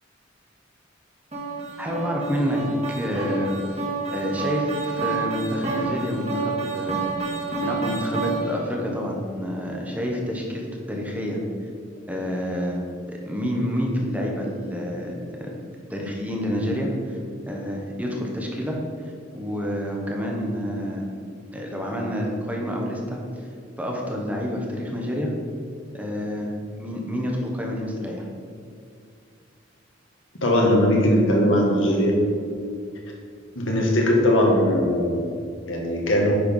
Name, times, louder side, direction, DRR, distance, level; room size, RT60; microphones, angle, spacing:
sound 1, 1.3-8.7, right 3 dB, 35° right, 1.9 m, -29 dB
voice 1, 1.8-2.6 2.9-3.5 4.1-7.0 7.6-11.4 12.1-12.8 13.1-15.5 15.9-17.2 17.5-18.8 19.0-21.1 21.5-23.5 23.8-25.3 25.9-26.5 26.8-28.3, equal, 10° right, -1 dB, 1.1 m, -28 dB
voice 2, 30.4-32.2 33.6-35.2 35.6-36.4, left 1 dB, 80° left, -1 dB, 1.9 m, -20 dB
9.9 x 4.6 x 5.4 m, 2.4 s
head